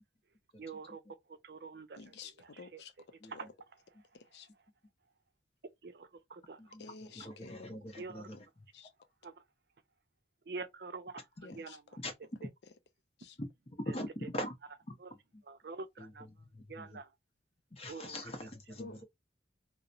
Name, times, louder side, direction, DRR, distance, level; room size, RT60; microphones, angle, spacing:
voice 1, 0.6-1.0 1.4-2.0 2.4-2.8 3.3-3.5 5.8-6.6 8.0-8.4 9.2-9.3 10.5-11.8 13.9-14.0 15.0-15.1 15.5-16.3 16.7-17.1 17.9-18.2, right 4 dB, 60° right, 0.5 m, -46 dB
voice 2, 1.9-2.9 3.2-3.5 4.1-4.5 6.8-8.4 8.7-8.9 11.4-11.8 13.2-13.4 18.8-19.0, left 4 dB, 70° left, 0.4 m, -51 dB
voice 3, 7.1-8.4 12.0-12.1 13.4-13.5 13.8-14.1 14.3-14.5 14.9-15.0 15.3-15.4 16.0-17.0 17.7-19.0, left 1 dB, 35° left, 0.7 m, -42 dB
2.9 x 2.0 x 2.4 m
head